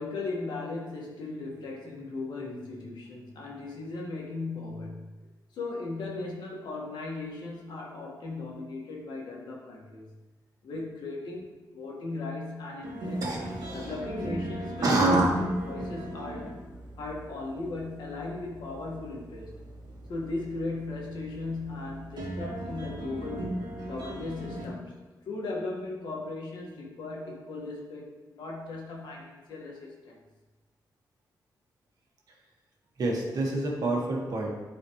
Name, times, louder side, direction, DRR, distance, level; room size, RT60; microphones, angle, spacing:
voice 1, 0.0-5.1 5.5-10.1 10.6-13.2 13.7-16.5 17.0-19.6 20.1-23.6 23.9-25.0 25.2-30.2, left 3 dB, 85° left, -2 dB, 1.7 m, -37 dB
sound 1, 12.8-24.6, right 1 dB, 85° right, 1.5 m, -39 dB
voice 2, 13.2-13.9 14.8-15.4 33.0-34.5, right 2 dB, 60° right, -1 dB, 1.7 m, -26 dB
12.0 x 4.3 x 3.1 m, 1.2 s
wide cardioid pair, 150°, 7 cm